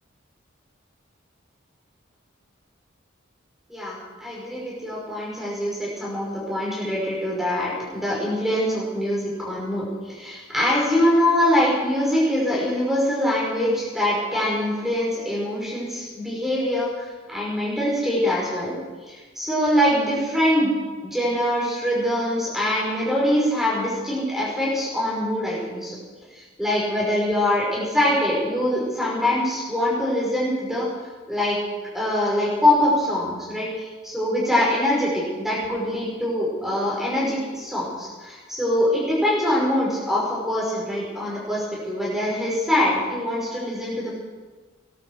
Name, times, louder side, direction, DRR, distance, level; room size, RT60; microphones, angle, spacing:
voice 1, 3.7-18.7 19.0-20.7 21.0-26.0 26.3-30.8 31.3-31.6 31.9-44.1, left 1 dB, ahead, -5 dB, 5.6 m, -23 dB
19.0 x 12.5 x 5.1 m, 1.4 s
head